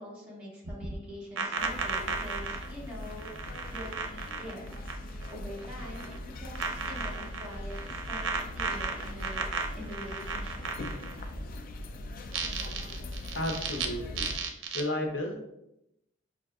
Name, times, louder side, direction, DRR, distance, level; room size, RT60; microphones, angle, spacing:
voice 1, 0.0-4.8 5.3-9.4 9.7-10.7, equal, 5° right, -8 dB, 1.4 m, -44 dB
sound 1, 0.6-5.3 5.6-6.2 6.6-11.3 12.2-13.9 14.2-14.8, right 5 dB, 90° right, 0.5 m, -35 dB
sound 2, 1.6-14.4, left 1 dB, 50° left, 0.3 m, -40 dB
voice 2, 13.3-14.3 14.7-15.4, left 1 dB, 70° left, 2 dB, 0.8 m, -32 dB
5.3 x 2.6 x 2.3 m, 0.84 s
head